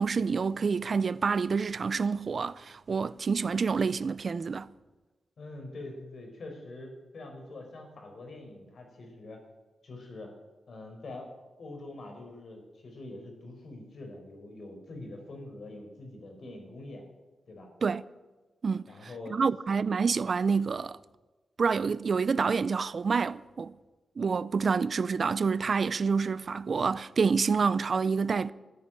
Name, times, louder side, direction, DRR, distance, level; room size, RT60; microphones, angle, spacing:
voice 1, 0.0-4.7 17.8-18.0 18.6-18.9 19.3-21.0 21.6-23.7 24.2-28.5, right 5 dB, 50° right, 0.4 m, -27 dB
voice 2, 5.4-9.4 9.8-10.3 10.7-11.3 11.6-17.0 17.5-17.7 18.9-19.4, left 2 dB, 60° left, 4.6 m, -44 dB
14.0 x 9.8 x 9.0 m
wide cardioid pair, 120°, 0 cm